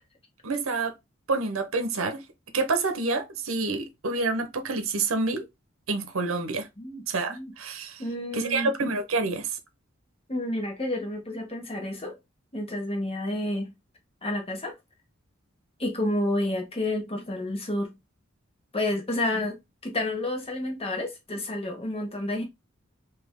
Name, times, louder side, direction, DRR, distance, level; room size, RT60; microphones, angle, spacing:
voice 1, 0.4-0.9 1.3-2.2 2.5-5.4 5.9-6.7 7.1-8.0 8.3-9.5, right 3 dB, 75° right, 0.8 m, -28 dB
voice 2, 8.0-8.7 10.3-12.2 12.5-13.7 14.2-14.7 15.8-17.9 18.7-22.4, left 1 dB, 30° left, 1.1 m, -30 dB
3.4 x 2.9 x 3.5 m
head